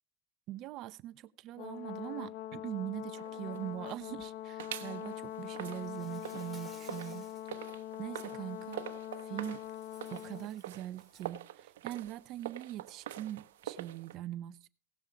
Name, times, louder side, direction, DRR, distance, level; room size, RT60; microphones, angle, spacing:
voice 1, 0.5-7.3 8.0-8.8 9.2-9.6 10.1-14.7, right 13 dB, 45° right, 0.7 m, -42 dB
Brass instrument, 1.6-10.5, left 12 dB, 55° left, 0.8 m, -43 dB
sound 1, 3.1-4.2 4.6-14.2, right 12 dB, 85° right, 1.0 m, -46 dB
Insect, 5.7-7.5 8.0-8.3 9.5-11.4, right 1 dB, 5° left, 2.4 m, -59 dB
18.0 x 7.1 x 5.0 m
supercardioid pair, 130°, 0 cm